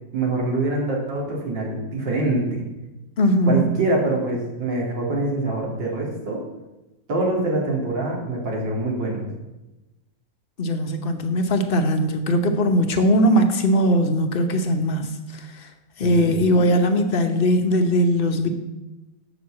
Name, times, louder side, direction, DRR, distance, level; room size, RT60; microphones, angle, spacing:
voice 1, 0.1-2.6 3.5-6.4 7.1-9.3 16.0-16.4, right 2 dB, 75° right, -2 dB, 3.0 m, -24 dB
voice 2, 3.2-3.6 10.6-15.7 16.0-18.5, equal, 40° left, 5 dB, 0.8 m, -20 dB
7.5 x 6.7 x 7.3 m, 1.0 s
omnidirectional pair, 2.0 m